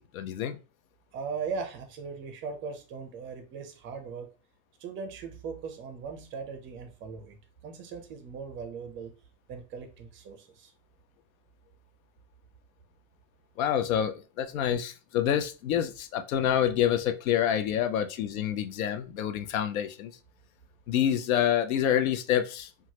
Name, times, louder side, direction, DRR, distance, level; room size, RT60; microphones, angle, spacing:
voice 1, 0.1-0.6 13.6-20.1 20.9-22.7, left 10 dB, 90° left, 0.6 m, -27 dB
voice 2, 1.1-4.3 4.8-7.4 7.6-9.1 9.5-10.7, right 5 dB, 30° right, 0.5 m, -39 dB
3.0 x 2.3 x 2.8 m
supercardioid pair, 140°, 40 cm